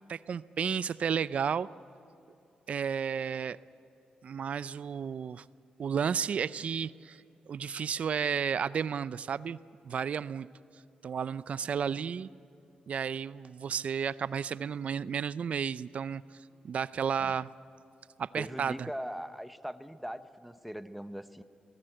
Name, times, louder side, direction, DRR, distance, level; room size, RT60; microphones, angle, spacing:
voice 1, 0.0-1.7 2.7-3.6 4.2-5.4 5.8-9.6 9.8-10.5 11.0-12.3 12.9-16.2 16.6-17.5 18.2-18.9, right 7 dB, 55° right, 17 dB, 0.4 m, -32 dB
voice 2, 18.4-21.4, equal, ahead, 11 dB, 0.9 m, -40 dB
22.5 x 18.0 x 7.8 m, 2.8 s
cardioid pair, 110°, 3 cm